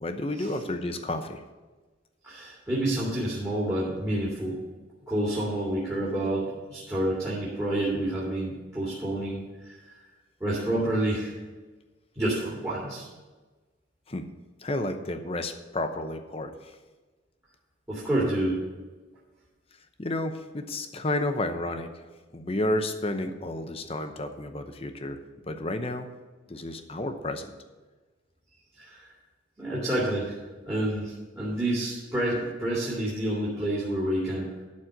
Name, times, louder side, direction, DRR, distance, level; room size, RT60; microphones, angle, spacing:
voice 1, 0.0-1.4 14.1-14.3 14.6-16.8 20.0-22.1 22.3-26.1 26.5-27.5, left 1 dB, 30° left, 7 dB, 0.8 m, -31 dB
voice 2, 2.2-4.6 5.1-10.0 10.4-11.3 12.2-13.1 17.9-18.6 28.8-29.1 29.6-30.4 30.7-34.6, right 1 dB, 15° right, -8 dB, 2.4 m, -29 dB
12.0 x 4.3 x 7.9 m, 1.3 s
head